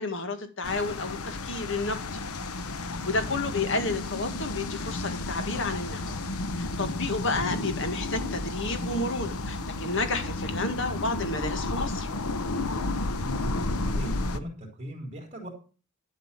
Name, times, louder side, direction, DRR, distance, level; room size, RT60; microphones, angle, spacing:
voice 1, 0.0-2.2 3.1-6.2 6.6-12.1, left 3 dB, 55° left, 1.8 m, -31 dB
sound 1, 0.6-14.4, left 2 dB, 85° left, 1.0 m, -32 dB
voice 2, 13.1-15.5, equal, 30° right, 3.5 m, -39 dB
12.0 x 5.6 x 7.5 m
head